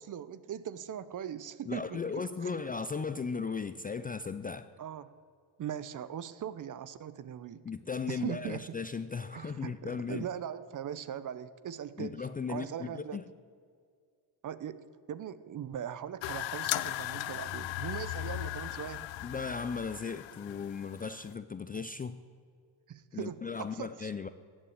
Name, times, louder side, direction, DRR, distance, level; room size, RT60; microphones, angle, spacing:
voice 1, 0.0-2.5 4.8-5.1 5.6-7.6 8.1-8.6 9.3-13.2 14.4-19.1 22.9-24.1, right 9 dB, 40° right, 16 dB, 0.7 m, -40 dB
voice 2, 1.7-4.7 7.6-10.3 12.0-13.2 19.2-22.2 23.1-24.3, left 5 dB, 20° left, 12 dB, 0.4 m, -36 dB
sound 1, 16.2-21.3, left 15 dB, 65° left, 0.8 m, -37 dB
15.0 x 8.9 x 8.6 m, 2.2 s
cardioid pair, 95°, 49 cm